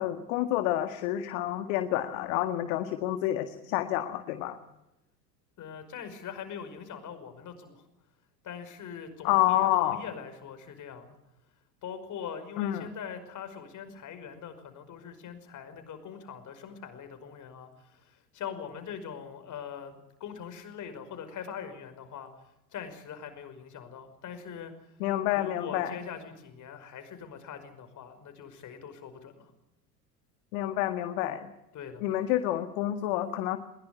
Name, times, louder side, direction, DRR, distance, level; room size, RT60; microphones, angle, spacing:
voice 1, 0.0-4.6 9.2-10.0 12.6-12.9 25.0-26.0 30.5-31.5 32.0-33.6, left 13 dB, 55° left, 9 dB, 1.8 m, -28 dB
voice 2, 5.6-7.8 8.4-11.2 11.8-22.4 22.7-24.7 25.3-29.5 31.7-32.0, left 7 dB, 35° left, 9 dB, 5.5 m, -42 dB
22.0 x 21.5 x 9.4 m, 0.90 s
figure-of-eight pair, 75°, 49 cm